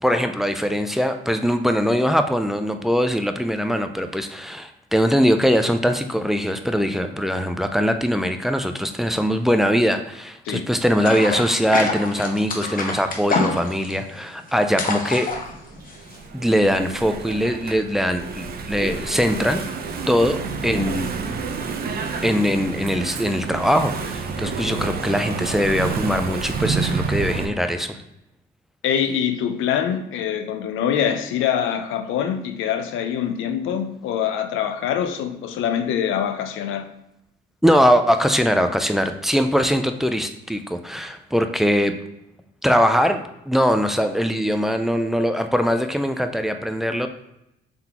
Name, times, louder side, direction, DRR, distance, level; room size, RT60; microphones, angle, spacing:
voice 1, 0.0-15.3 16.3-19.6 20.1-21.1 22.2-28.0 37.6-41.9 42.6-47.1, equal, ahead, 7 dB, 0.3 m, -21 dB
sound 1, 11.0-16.2, left 3 dB, 45° left, 0.8 m, -26 dB
Engine / Mechanisms, 15.3-27.5, right 5 dB, 50° right, 0.5 m, -29 dB
voice 2, 28.8-36.9, left 9 dB, 85° left, 8 dB, 0.5 m, -24 dB
3.9 x 3.6 x 2.9 m, 0.85 s
cardioid pair, 90°, 20 cm